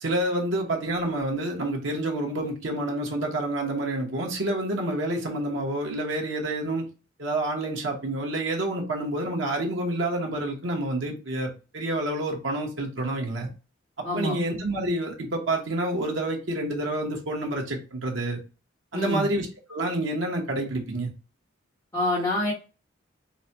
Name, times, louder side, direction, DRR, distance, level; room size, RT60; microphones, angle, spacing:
voice 1, 0.0-6.9 7.2-13.5 14.0-18.4 18.9-21.1, right 1 dB, 90° right, 0 dB, 1.1 m, -28 dB
voice 2, 14.0-14.3 18.9-19.3 21.9-22.5, left 1 dB, 15° left, -9 dB, 1.1 m, -26 dB
3.9 x 2.2 x 2.8 m, 0.34 s
head